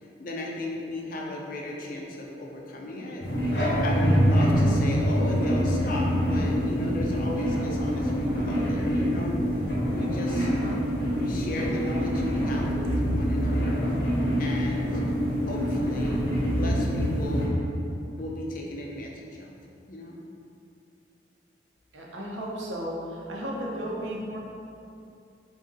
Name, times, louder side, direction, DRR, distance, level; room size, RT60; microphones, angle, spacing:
voice 1, 0.0-3.2 3.8-9.4 9.9-10.5 11.2-13.9 14.4-15.0 15.5-16.2 16.5-17.6 18.2-19.5 19.9-20.2, left 1 dB, 50° left, -1 dB, 0.5 m, -35 dB
sound 1, 3.2-17.5, equal, 70° left, 1.0 m, -25 dB
voice 2, 21.9-24.4, equal, 90° right, -3 dB, 0.8 m, -34 dB
4.0 x 2.6 x 3.8 m, 2.6 s
head